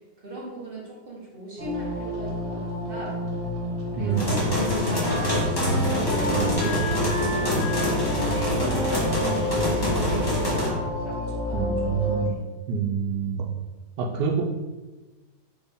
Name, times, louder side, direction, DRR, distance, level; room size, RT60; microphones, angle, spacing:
voice 1, 0.2-3.2 3.9-5.5 5.8-12.4, equal, 40° right, -5 dB, 1.0 m, -39 dB
sound 1, 1.6-12.2, left 1 dB, 70° right, 1.6 m, -30 dB
Wind instrument woodwind instrument, 3.5-11.3, left 2 dB, 65° left, 0.5 m, -34 dB
voice 2, 4.0-4.5 6.3-6.6 11.5-12.4 12.7-13.5 14.0-14.4, right 7 dB, 90° right, 1 dB, 1.2 m, -27 dB
sound 2, 4.1-10.7, equal, 20° left, 0.8 m, -26 dB
4.4 x 3.3 x 3.4 m, 1.2 s
omnidirectional pair, 1.8 m